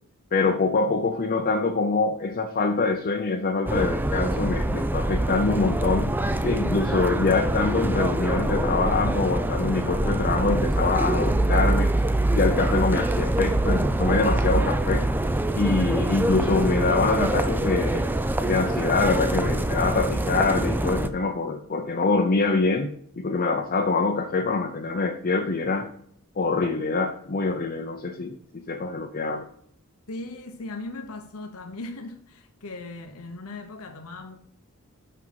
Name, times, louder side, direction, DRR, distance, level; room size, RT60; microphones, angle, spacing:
voice 1, 0.3-6.1 6.4-12.0 12.3-15.1 15.5-18.1 18.4-25.9 26.4-29.5, left 3 dB, 40° left, 0.6 m, -25 dB
sound 1, 3.7-21.1, right 1 dB, 10° right, 0.4 m, -24 dB
voice 2, 30.1-34.4, left 2 dB, 85° left, 0.9 m, -38 dB
6.1 x 5.5 x 4.6 m
head